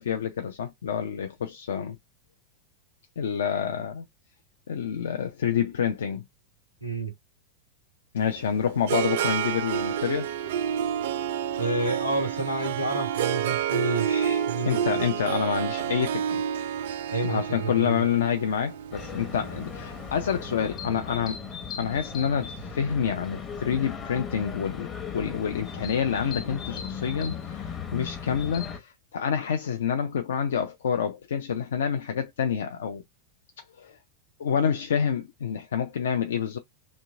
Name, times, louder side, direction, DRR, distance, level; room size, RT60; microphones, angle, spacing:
voice 1, 0.0-2.0 3.2-4.0 4.7-6.2 8.1-10.3 14.7-16.4 17.2-21.4 21.8-33.0 33.8-34.0 34.4-36.6, left 7 dB, 65° left, 0.4 m, -28 dB
voice 2, 6.8-7.1 11.6-15.0 17.1-18.1, right 2 dB, 85° left, 1.3 m, -30 dB
Harp, 8.2-20.4, right 9 dB, 55° right, 0.3 m, -29 dB
sound 1, 18.9-28.8, left 6 dB, 25° left, 0.8 m, -37 dB
3.1 x 2.8 x 3.5 m
figure-of-eight pair, 90°, 0 cm